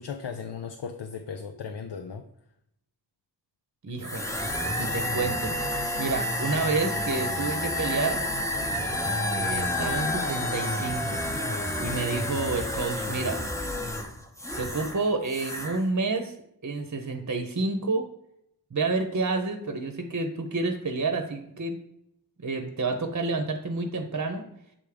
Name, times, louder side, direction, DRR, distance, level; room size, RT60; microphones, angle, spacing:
voice 1, 0.0-2.2, left 6 dB, 90° left, 6 dB, 0.6 m, -36 dB
voice 2, 3.8-4.3 4.8-8.2 9.3-13.4 14.6-16.3 16.6-18.1 18.7-21.8 22.4-24.4, right 3 dB, 45° right, 5 dB, 0.8 m, -29 dB
sound 1, 4.0-15.0 15.3-15.8, left 1 dB, 5° left, 0.8 m, -30 dB
7.3 x 3.5 x 5.0 m, 0.75 s
wide cardioid pair, 55°, 41 cm